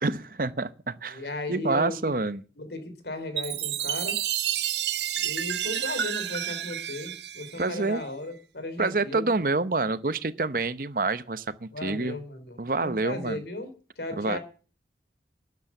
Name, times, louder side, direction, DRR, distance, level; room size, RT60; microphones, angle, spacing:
voice 1, 0.0-1.2 1.5-2.4 7.6-8.0 8.8-12.2 12.6-13.4 14.2-14.4, right 3 dB, 50° right, 0.8 m, -27 dB
voice 2, 1.1-2.0 2.6-4.2 5.2-9.3 11.7-13.7 14.0-14.4, left 2 dB, 75° left, 3.4 m, -36 dB
Chime, 3.4-8.0, right 11 dB, 80° right, 0.9 m, -30 dB
13.5 x 9.5 x 7.1 m
head